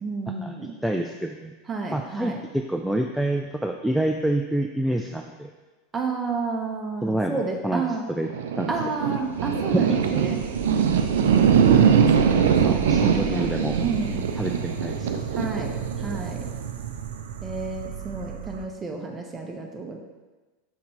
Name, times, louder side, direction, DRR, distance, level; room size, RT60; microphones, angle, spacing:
voice 1, 0.0-0.8 1.7-2.4 5.9-8.1 8.7-10.4 12.0-13.5 13.8-14.2 15.4-16.5 17.4-20.0, right 4 dB, 20° right, 2 dB, 0.9 m, -31 dB
voice 2, 0.8-1.5 1.9-5.5 7.0-8.3 8.6-8.7 9.7-9.8 12.5-13.8 14.4-15.1, right 1 dB, ahead, 3 dB, 0.3 m, -27 dB
sound 1, 8.2-18.6, right 7 dB, 65° right, 0.4 m, -22 dB
6.4 x 5.7 x 3.2 m, 1.3 s
figure-of-eight pair, 85°, 0 cm